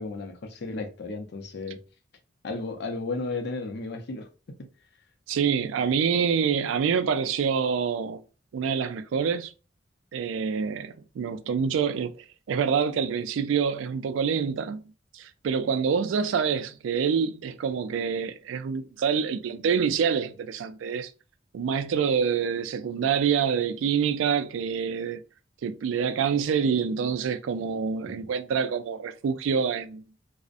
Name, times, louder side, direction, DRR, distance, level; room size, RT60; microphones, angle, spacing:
voice 1, 0.0-1.8 2.4-4.7 28.0-28.3, left 3 dB, 60° left, 0.5 m, -34 dB
voice 2, 5.3-8.2 8.5-9.5 10.1-14.8 15.1-21.1 21.5-25.2 25.6-30.0, right 6 dB, 90° right, 0.3 m, -26 dB
2.5 x 2.0 x 2.4 m
head